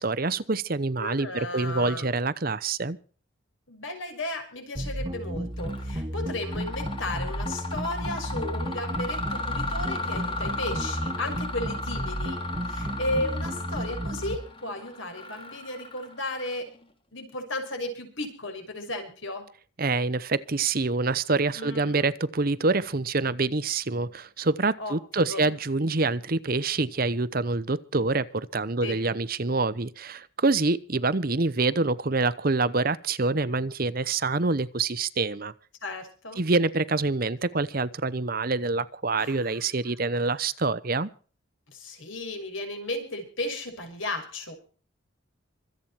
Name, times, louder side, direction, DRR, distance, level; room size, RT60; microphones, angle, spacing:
voice 1, 0.0-3.0 19.8-35.5 36.4-41.1, right 3 dB, 45° right, 0.8 m, -26 dB
voice 2, 1.0-2.1 3.7-16.7 17.1-19.5 21.6-22.1 24.8-25.5 28.8-29.0 35.8-36.4 39.2-39.7 40.1-40.3 41.7-44.6, left 2 dB, 70° left, 6.3 m, -35 dB
sound 1, 4.8-14.4, right 1 dB, 25° right, 1.2 m, -33 dB
Mechanisms, 5.6-5.9 6.3-16.8, left 3 dB, 25° left, 3.3 m, -36 dB
25.5 x 8.8 x 4.5 m
head